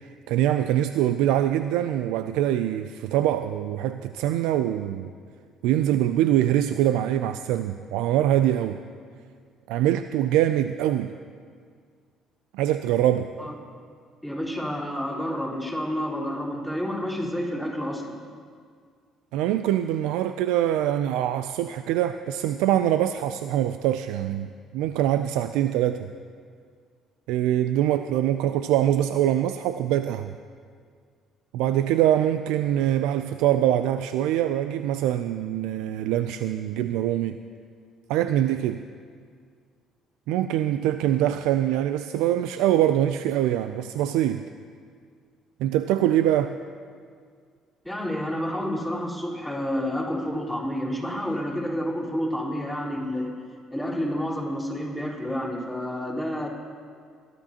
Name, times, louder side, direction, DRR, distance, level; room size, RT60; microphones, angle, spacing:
voice 1, 0.0-5.1 5.6-8.8 9.7-11.2 12.5-13.3 19.3-26.1 27.3-30.3 31.5-37.4 38.1-38.8 40.3-44.5 45.6-46.6, right 12 dB, 80° right, 10 dB, 0.3 m, -24 dB
voice 2, 14.2-18.2 47.8-53.4 53.7-56.5, equal, ahead, -5 dB, 4.1 m, -29 dB
21.5 x 12.5 x 2.9 m, 2.1 s
supercardioid pair, 65°, 0 cm